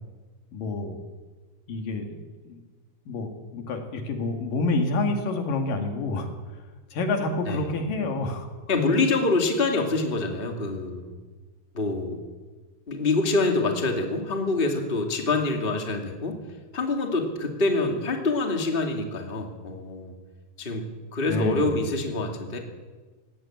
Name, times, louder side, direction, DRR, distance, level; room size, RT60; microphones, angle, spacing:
voice 1, 0.5-1.0 1.7-2.2 2.5-2.6 3.1-6.3 6.9-8.5 21.3-21.8, left 2 dB, 85° left, 4 dB, 3.9 m, -28 dB
voice 2, 8.7-11.1 11.7-12.2 12.9-16.4 16.7-20.2 20.6-22.6, left 3 dB, 20° left, 3 dB, 2.2 m, -26 dB
19.5 x 16.5 x 9.0 m, 1.3 s
omnidirectional pair, 3.8 m